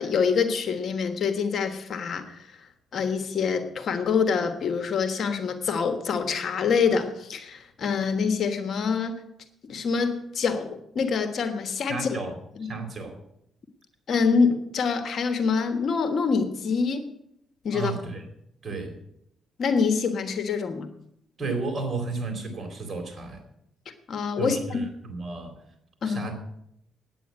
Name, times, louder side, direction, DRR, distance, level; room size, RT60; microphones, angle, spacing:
voice 1, 0.0-2.4 2.9-9.1 9.7-12.2 12.6-12.7 14.1-17.1 17.6-17.9 19.6-20.9 24.1-24.8 26.0-26.2, left 5 dB, 60° left, 9 dB, 1.3 m, -25 dB
voice 2, 11.9-12.3 12.6-13.2 17.7-18.3 18.6-18.9 21.4-23.4 24.4-25.5 26.0-26.3, right 3 dB, 30° right, 4 dB, 3.8 m, -33 dB
9.3 x 9.0 x 8.7 m, 0.77 s
cardioid pair, 90°, 0 cm